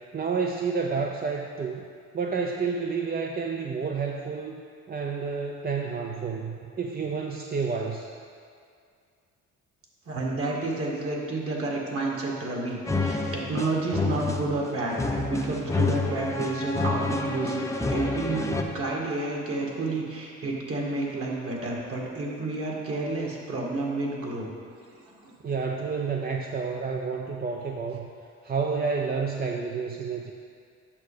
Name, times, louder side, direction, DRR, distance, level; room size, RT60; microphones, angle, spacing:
voice 1, 0.1-1.8 2.1-4.6 4.9-8.1 25.4-28.1 28.4-30.3, right 5 dB, 30° right, 1 dB, 0.6 m, -30 dB
voice 2, 10.1-24.5 25.1-25.3, right 2 dB, 50° right, -2 dB, 2.1 m, -30 dB
sound 1, 12.9-18.6, left 3 dB, 10° left, 0.7 m, -28 dB
8.5 x 6.5 x 5.1 m, 2.3 s
cardioid pair, 90°, 30 cm